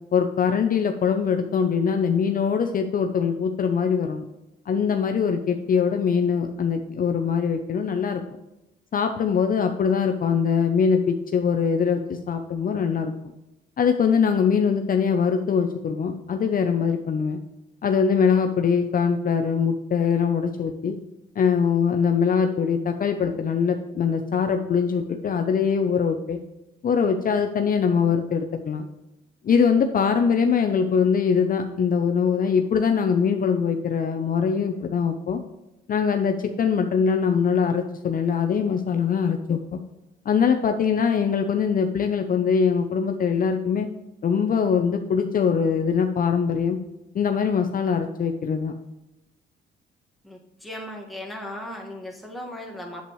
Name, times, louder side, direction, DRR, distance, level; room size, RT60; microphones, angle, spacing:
voice 1, 0.1-4.2 4.7-8.2 8.9-13.1 13.8-17.4 17.8-21.0 21.4-26.4 26.8-28.9 29.4-35.4 35.9-39.6 40.3-43.9 44.2-46.8 47.1-48.7, left 6 dB, 45° left, 6 dB, 0.6 m, -22 dB
voice 2, 50.2-53.0, left 1 dB, ahead, -2 dB, 1.8 m, -37 dB
8.1 x 7.7 x 3.1 m, 0.97 s
cardioid pair, 90°, 20 cm